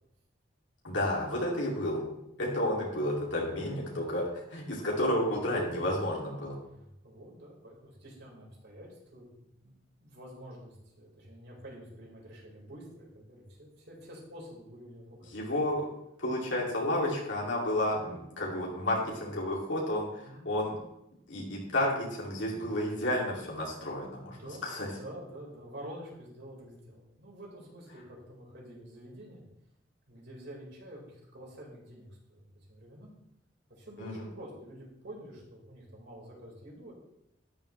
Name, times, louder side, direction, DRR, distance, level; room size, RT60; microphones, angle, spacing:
voice 1, 0.8-2.0 2.4-4.2 4.5-6.6 15.3-15.9 16.2-20.8 21.3-24.4 24.6-24.9 34.0-34.3, left 1 dB, 80° left, -3 dB, 2.6 m, -31 dB
voice 2, 3.4-4.1 4.7-5.8 6.7-9.3 9.6-9.7 10.0-15.2 17.0-17.2 20.2-20.5 24.1-29.4 30.1-33.1 33.7-36.9, equal, 65° right, -3 dB, 4.5 m, -48 dB
12.5 x 11.0 x 3.3 m, 0.82 s
head